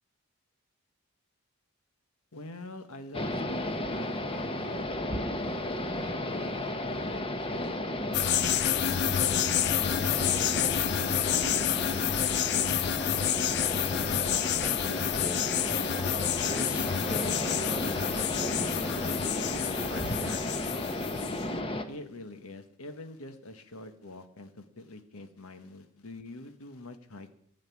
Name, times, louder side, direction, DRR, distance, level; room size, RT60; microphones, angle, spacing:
voice 1, 2.3-4.8 5.4-12.0 12.5-13.0 21.9-27.3, left 2 dB, 80° left, 9 dB, 1.4 m, -46 dB
sound 1, 3.1-21.8, left 1 dB, 25° left, 0.9 m, -33 dB
sound 2, 8.1-21.4, left 10 dB, 50° left, 0.5 m, -29 dB
voice 2, 14.6-15.7 16.4-20.5, equal, 5° right, 7 dB, 0.8 m, -43 dB
14.5 x 6.7 x 9.5 m, 0.70 s
head